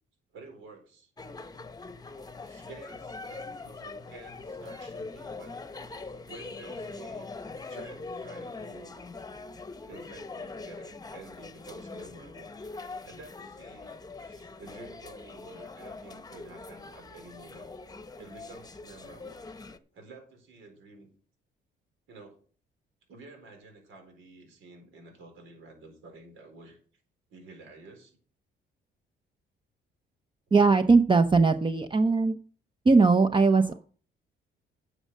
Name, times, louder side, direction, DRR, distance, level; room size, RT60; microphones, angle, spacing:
voice 1, 0.3-1.1 2.4-5.6 6.2-7.3 7.7-9.0 9.8-12.5 13.0-17.7 18.2-19.4 19.9-21.1 22.1-22.4 23.1-26.8 27.3-28.2 33.5-33.8, right 3 dB, 85° right, 4 dB, 4.2 m, -50 dB
sound 1, 1.2-19.8, left 3 dB, 20° left, 1.0 m, -42 dB
voice 2, 30.5-32.4 32.8-33.7, right 4 dB, 25° right, 8 dB, 0.7 m, -20 dB
9.9 x 6.5 x 6.4 m, 0.42 s
cardioid pair, 90°, 20 cm